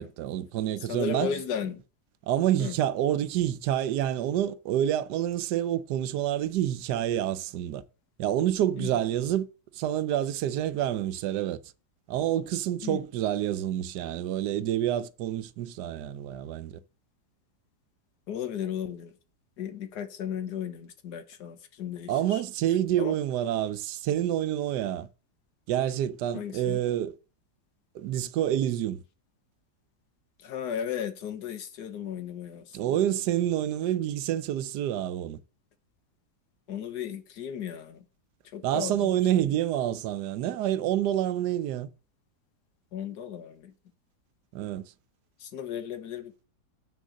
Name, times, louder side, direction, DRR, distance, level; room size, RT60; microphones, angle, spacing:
voice 1, 0.0-1.4 2.3-7.8 8.2-9.5 9.7-11.6 12.1-16.8 22.1-25.1 25.7-27.1 27.9-29.0 32.7-35.4 38.6-41.9 44.5-44.9, right 11 dB, 85° right, 1.2 m, -28 dB
voice 2, 0.9-1.8 2.6-2.8 8.8-8.9 12.8-13.0 18.3-19.1 19.6-22.4 23.0-23.1 26.3-26.8 30.4-33.0 36.7-38.0 38.5-39.1 42.9-43.7 45.4-46.4, left 8 dB, 80° left, 1.6 m, -35 dB
7.1 x 6.4 x 6.3 m
omnidirectional pair, 1.7 m